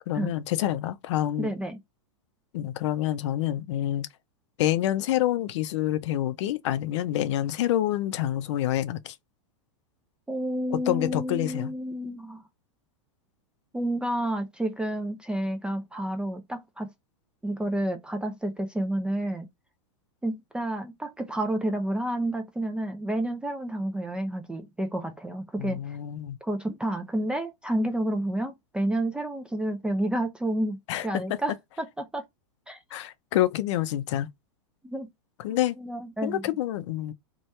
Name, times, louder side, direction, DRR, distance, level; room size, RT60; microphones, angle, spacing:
voice 1, 0.1-1.5 2.5-4.1 4.6-9.2 10.7-11.7 25.6-26.4 30.9-31.4 32.9-34.3 35.4-35.8 36.2-37.1, left 13 dB, 65° left, 0.5 m, -27 dB
voice 2, 1.4-1.8 10.3-12.4 13.7-16.9 17.4-19.5 20.2-26.0 26.4-30.8 31.0-32.3 32.7-32.8 34.8-35.1 35.5-36.4, right 1 dB, 5° right, 0.3 m, -30 dB
2.8 x 2.2 x 3.1 m
hypercardioid pair, 130°, 16 cm